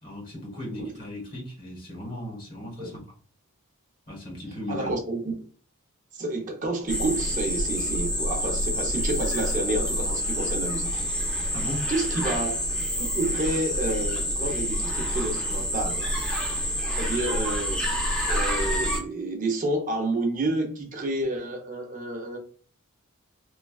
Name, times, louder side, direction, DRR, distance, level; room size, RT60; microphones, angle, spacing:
voice 1, 0.0-3.0 4.1-4.9 11.5-11.9 12.1-12.2, left 1 dB, 40° left, 1.3 m, -37 dB
voice 2, 0.5-0.9 2.8-2.9 4.7-5.3 6.2-11.0 11.9-12.6 13.0-16.1 16.9-17.8 18.3-22.4, right 2 dB, 35° right, 0.7 m, -29 dB
sound 1, 6.9-19.0, equal, 5° left, 0.7 m, -27 dB
3.1 x 2.2 x 2.3 m
head